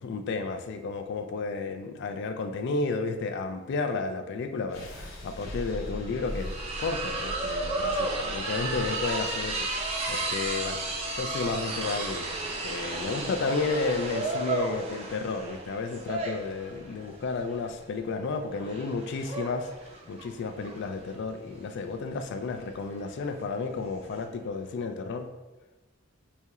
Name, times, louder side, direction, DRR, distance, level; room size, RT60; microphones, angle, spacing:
voice 1, 0.0-12.3 12.6-19.7 20.1-25.3, left 4 dB, 60° left, 7 dB, 0.3 m, -32 dB
sound 1, 4.7-16.7, equal, 75° left, 0.8 m, -43 dB
sound 2, 5.0-5.1 5.4-24.2, right 2 dB, 30° right, 0.4 m, -34 dB
4.1 x 2.8 x 2.3 m, 1.1 s
head